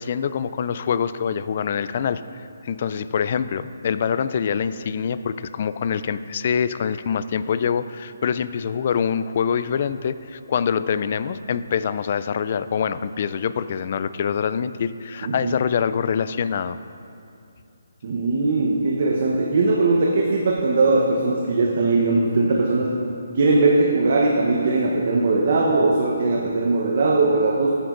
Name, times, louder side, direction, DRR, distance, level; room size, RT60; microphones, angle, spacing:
voice 1, 0.0-16.8, left 7 dB, 45° left, 14 dB, 0.3 m, -25 dB
voice 2, 18.0-22.9 23.3-27.7, right 3 dB, 55° right, -2 dB, 0.9 m, -20 dB
12.5 x 9.9 x 2.6 m, 2.6 s
hypercardioid pair, 155°, 0 cm